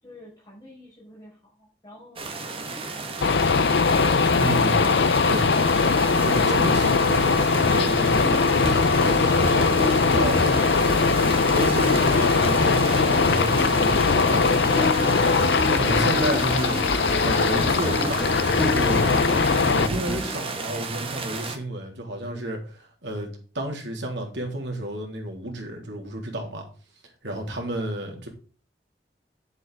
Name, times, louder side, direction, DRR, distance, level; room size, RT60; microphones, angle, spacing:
voice 1, 0.0-3.7 27.5-28.2, left 1 dB, 20° left, 4.8 m, -49 dB
sound 1, 2.2-21.6, right 3 dB, 30° right, 1.6 m, -33 dB
sound 2, 3.2-19.9, left 4 dB, 75° left, 0.6 m, -21 dB
voice 2, 4.4-4.9 5.3-5.5 6.2-10.8 11.5-15.2 15.7-16.8 17.2-19.1 19.6-26.7 27.2-28.3, right 1 dB, 85° right, 3.3 m, -31 dB
sound 3, 8.3-21.2, left 1 dB, 5° left, 3.0 m, -31 dB
9.3 x 7.8 x 3.7 m
head